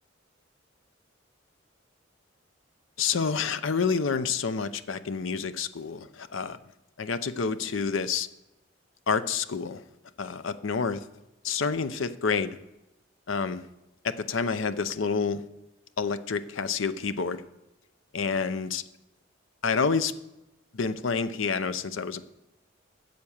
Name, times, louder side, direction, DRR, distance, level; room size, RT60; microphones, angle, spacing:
voice 1, 3.0-6.6 7.0-8.3 9.1-9.8 10.2-11.0 11.4-12.5 13.3-13.6 14.3-15.4 16.0-17.4 18.1-18.8 19.6-20.1 20.7-22.2, left 5 dB, 75° left, 13 dB, 0.7 m, -28 dB
9.4 x 7.8 x 7.2 m, 0.96 s
head